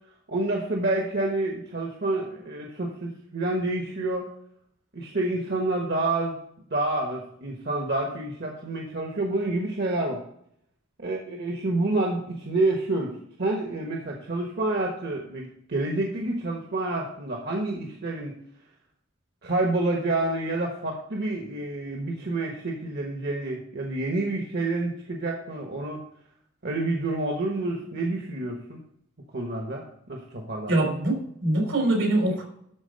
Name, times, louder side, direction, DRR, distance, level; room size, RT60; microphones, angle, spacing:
voice 1, 0.3-4.3 4.9-6.3 6.7-10.2 11.0-18.4 19.4-26.0 26.6-28.8 29.3-30.7, right 2 dB, 60° right, 1 dB, 1.2 m, -28 dB
voice 2, 30.7-32.4, right 1 dB, 85° right, 1 dB, 3.5 m, -23 dB
12.5 x 4.2 x 5.3 m, 0.72 s
head